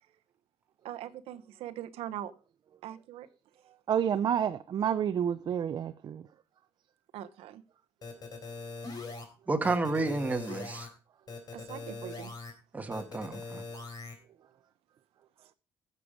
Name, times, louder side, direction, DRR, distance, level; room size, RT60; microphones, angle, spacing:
voice 1, 0.8-2.3 2.8-3.3 7.1-7.6 11.5-12.3, right 12 dB, 80° right, 0.9 m, -41 dB
voice 2, 3.9-6.2, right 9 dB, 45° right, 0.6 m, -29 dB
sound 1, 8.0-9.2 9.6-10.9 11.3-12.5 12.9-14.1, left 3 dB, 40° left, 3.7 m, -41 dB
voice 3, 9.5-10.9 12.7-13.6, right 3 dB, 15° right, 1.3 m, -31 dB
16.0 x 6.9 x 5.0 m
cardioid pair, 150°, 10 cm